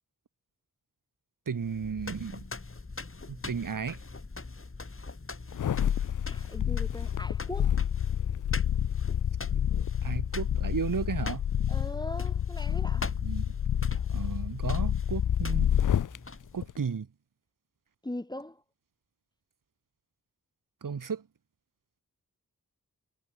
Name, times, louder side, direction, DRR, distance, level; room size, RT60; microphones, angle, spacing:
voice 1, 1.5-2.4 3.3-4.0 9.5-9.6 10.0-11.4 13.2-13.6 14.1-15.7 16.5-17.1 20.8-21.2, right 6 dB, 60° right, 2.0 m, -34 dB
sound 1, 1.6-16.7, left 3 dB, 35° left, 2.9 m, -43 dB
sound 2, 5.5-16.2 16.6-16.7, left 9 dB, 60° left, 0.6 m, -29 dB
voice 2, 6.3-7.8 11.7-13.1 18.0-18.6, left 1 dB, 10° left, 1.0 m, -40 dB
cardioid pair, 40°, 35 cm